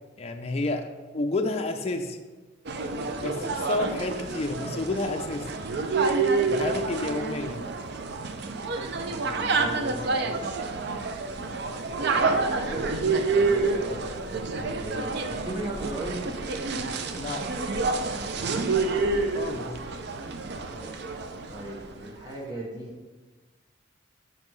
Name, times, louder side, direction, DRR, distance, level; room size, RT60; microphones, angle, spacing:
voice 1, 0.2-2.2 3.2-5.5 6.5-7.6 17.2-17.6 19.3-19.8, left 2 dB, 30° left, 4 dB, 0.4 m, -30 dB
sound 1, 2.7-21.9, right 3 dB, 55° right, 0.5 m, -28 dB
voice 2, 9.0-10.5 12.2-13.1 13.3-16.2 19.8-20.0 20.6-21.0 21.5-22.9, right 1 dB, 20° right, -6 dB, 1.7 m, -37 dB
7.4 x 5.2 x 3.2 m, 1.3 s
head